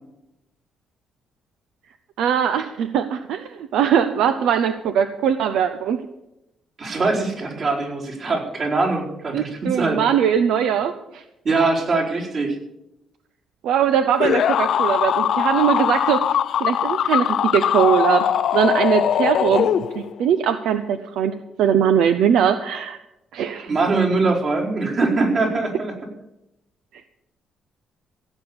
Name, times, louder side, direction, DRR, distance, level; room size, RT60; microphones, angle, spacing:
voice 1, 2.2-6.1 9.3-11.2 13.6-18.2 18.5-19.7 19.9-23.0 23.3-23.7, right 8 dB, 85° right, 10 dB, 0.7 m, -21 dB
voice 2, 6.8-10.0 11.4-12.6 23.7-25.9, right 3 dB, 55° right, -2 dB, 4.5 m, -22 dB
sound 1, 14.2-20.2, left 9 dB, 65° left, 0.5 m, -21 dB
16.0 x 8.1 x 7.0 m, 0.90 s
cardioid pair, 90°, 0 cm